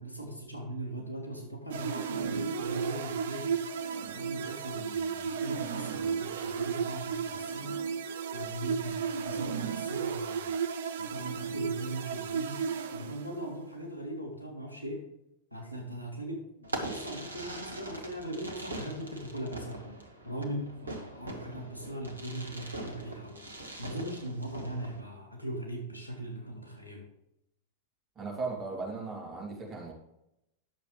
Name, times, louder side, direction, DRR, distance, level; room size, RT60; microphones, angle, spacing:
voice 1, 0.0-3.6 4.0-7.7 8.3-10.6 11.0-12.6 12.9-15.0 15.5-19.9 20.2-27.1, right 1 dB, 85° left, 0 dB, 1.9 m, -39 dB
sound 1, 1.7-13.6, right 6 dB, 60° right, 0.6 m, -34 dB
Fireworks, 16.6-25.0, right 1 dB, 75° right, 1.2 m, -42 dB
voice 2, 28.2-29.9, right 3 dB, 25° right, -2 dB, 2.8 m, -37 dB
10.0 x 7.0 x 3.2 m, 0.84 s
figure-of-eight pair, 90°, 0 cm